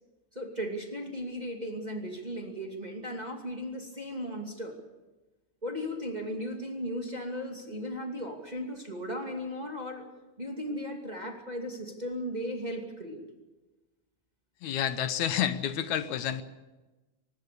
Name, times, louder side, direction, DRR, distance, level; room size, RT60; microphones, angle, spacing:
voice 1, 0.3-4.8 5.6-10.0 10.4-13.2, equal, 15° right, 2 dB, 2.3 m, -36 dB
voice 2, 14.6-16.4, left 10 dB, 75° left, 12 dB, 2.3 m, -29 dB
24.0 x 20.5 x 6.9 m, 1.1 s
omnidirectional pair, 3.4 m